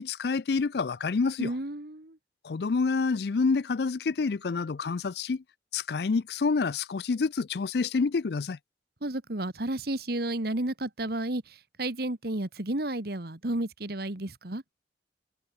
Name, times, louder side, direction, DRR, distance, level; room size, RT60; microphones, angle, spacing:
voice 1, 0.0-1.5 2.4-5.4 5.7-8.6, left 4 dB, 60° left, 0.4 m, -28 dB
voice 2, 1.4-2.2 9.0-14.6, right 1 dB, 55° right, 1.8 m, -32 dB
head